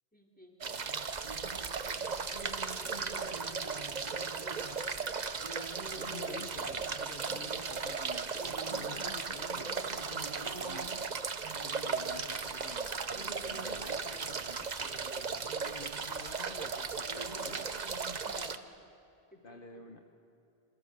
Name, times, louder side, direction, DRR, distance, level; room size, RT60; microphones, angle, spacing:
voice 1, 0.1-0.6 1.8-5.2 5.7-6.4 18.2-18.6 19.3-19.9, left 1 dB, 10° left, 0 dB, 3.7 m, -55 dB
sound 1, 0.6-18.6, right 5 dB, 45° right, 1.0 m, -36 dB
voice 2, 5.9-11.0 11.6-17.7 19.4-20.0, left 3 dB, 55° left, 4 dB, 1.5 m, -50 dB
27.5 x 27.0 x 6.7 m, 3.0 s
omnidirectional pair, 1.1 m